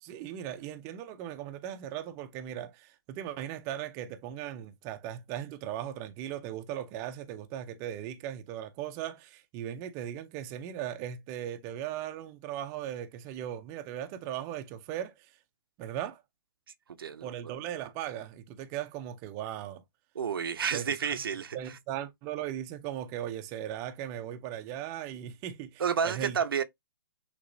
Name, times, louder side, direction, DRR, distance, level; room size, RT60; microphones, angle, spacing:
voice 1, 0.0-15.4 15.8-16.2 17.2-19.8 20.7-21.2 21.5-26.4, right 11 dB, 25° right, 0.6 m, -38 dB
voice 2, 17.0-17.3 20.1-21.6 25.8-26.6, right 7 dB, 75° right, 0.7 m, -30 dB
6.4 x 2.9 x 2.6 m
hypercardioid pair, 140°, 12 cm